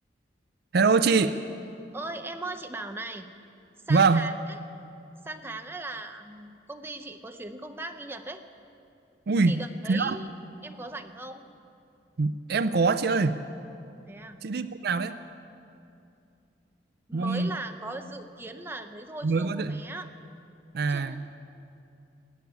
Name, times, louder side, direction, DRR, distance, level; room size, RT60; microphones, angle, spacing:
voice 1, 0.7-1.4 3.9-4.3 9.3-9.6 9.9-10.2 12.2-13.4 14.4-15.2 17.1-17.5 19.2-19.8 20.7-21.2, right 4 dB, 60° right, 12 dB, 0.5 m, -24 dB
voice 2, 1.9-3.3 3.9-4.3 5.2-8.4 9.5-10.3 10.6-11.4 14.0-14.4 17.1-20.1 20.9-21.2, right 2 dB, 15° right, 5 dB, 0.8 m, -38 dB
18.0 x 8.6 x 9.4 m, 2.6 s
head